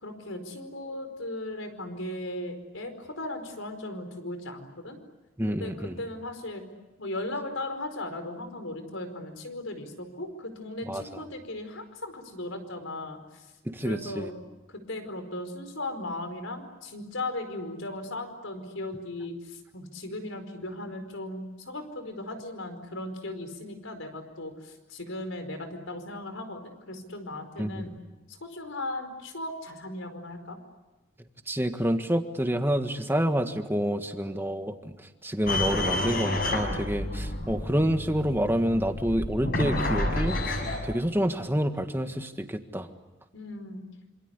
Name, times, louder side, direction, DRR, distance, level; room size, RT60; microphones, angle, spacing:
voice 1, 0.0-5.0 5.5-6.6 7.0-13.2 13.8-14.3 14.9-27.9 28.3-30.6 43.3-43.8, left 2 dB, 90° left, 7 dB, 4.8 m, -37 dB
voice 2, 5.4-6.0 10.9-11.0 13.7-14.3 27.6-27.9 31.5-34.7 35.2-40.5 40.8-42.9, equal, 10° right, 7 dB, 1.6 m, -28 dB
sound 1, 35.5-40.8, left 1 dB, 50° left, 6.3 m, -29 dB
27.0 x 26.5 x 8.2 m, 1.1 s
head